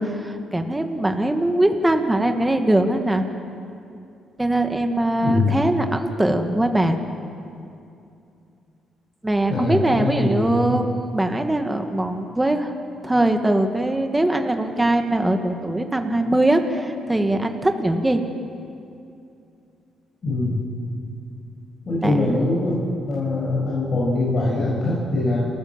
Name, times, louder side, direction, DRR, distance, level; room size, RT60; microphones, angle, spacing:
voice 1, 0.0-3.2 4.4-7.0 9.2-12.7 13.0-18.2 22.0-22.4, right 1 dB, 10° right, 5 dB, 1.7 m, -21 dB
voice 2, 5.2-5.6 9.5-10.7 20.2-20.6 21.9-22.7 23.1-25.4, left 2 dB, 45° left, -6 dB, 6.6 m, -22 dB
30.0 x 14.0 x 7.3 m, 2.6 s
cardioid pair, 90°, 0 cm